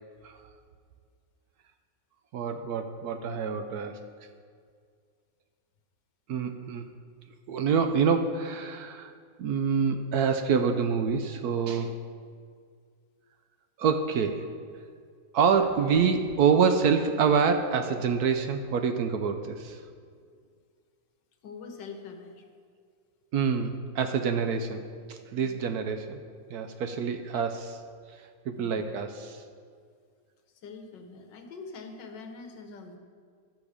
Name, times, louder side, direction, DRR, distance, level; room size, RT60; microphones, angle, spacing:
voice 1, 2.3-4.0 6.3-6.8 7.5-9.1 9.4-12.0 13.8-14.5 15.3-19.8 23.3-24.8 25.1-26.2 26.5-27.8 28.5-29.4, right 6 dB, 70° right, 7 dB, 1.0 m, -26 dB
sound 1, 15.5-20.1 20.5-20.6, right 1 dB, 45° right, 2.3 m, -52 dB
voice 2, 21.4-22.4 25.3-25.6 28.6-28.7 30.6-33.0, left 4 dB, 80° left, 5 dB, 1.7 m, -44 dB
13.0 x 6.4 x 5.0 m, 2.1 s
omnidirectional pair, 1.9 m